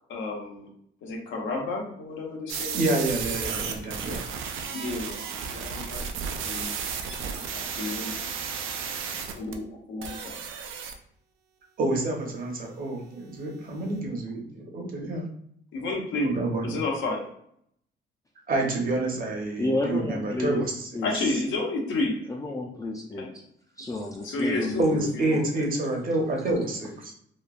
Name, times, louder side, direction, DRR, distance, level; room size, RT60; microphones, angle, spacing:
voice 1, 0.1-0.7 1.0-3.0 4.7-5.2 5.5-6.0 6.4-6.8 7.3-8.3 9.3-10.4 15.7-16.3 16.6-17.2 21.0-22.2 23.2-23.3 23.9-24.0 24.2-25.6, left 2 dB, 80° left, 0 dB, 0.8 m, -31 dB
sound 1, 2.5-9.5 10.0-10.9, right 6 dB, 85° right, 0.4 m, -33 dB
voice 2, 2.7-4.2 11.8-15.2 16.2-16.8 18.5-20.9 24.8-27.1, right 2 dB, 45° right, 0 dB, 0.8 m, -28 dB
voice 3, 19.6-20.7 20.9-21.1 22.3-23.3 23.8-25.1, left 2 dB, 15° left, -1 dB, 0.4 m, -30 dB
3.0 x 2.2 x 2.4 m, 0.69 s
cardioid pair, 90°, 20 cm